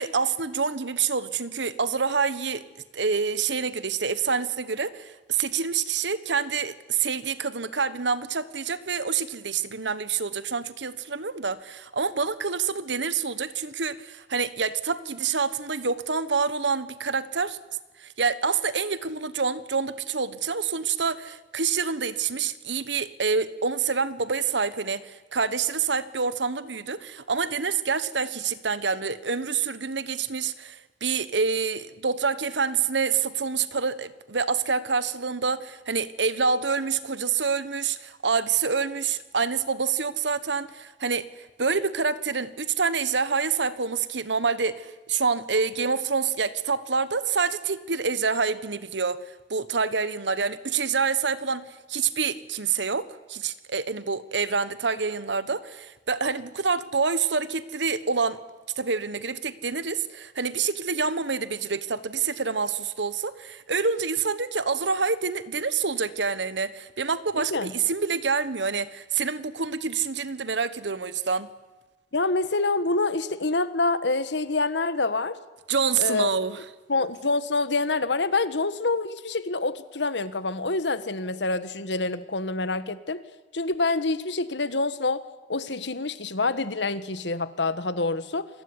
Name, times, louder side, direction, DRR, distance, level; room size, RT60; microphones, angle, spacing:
voice 1, 0.0-2.6 2.9-17.6 18.0-49.2 49.5-58.4 58.8-71.5 75.7-76.6, right 5 dB, 85° right, 15 dB, 1.4 m, -27 dB
voice 2, 67.3-67.7 72.1-75.4 76.0-76.4 76.9-83.2 83.5-85.2 85.5-88.5, left 3 dB, 80° left, 14 dB, 1.5 m, -26 dB
28.0 x 21.5 x 9.9 m, 1.2 s
head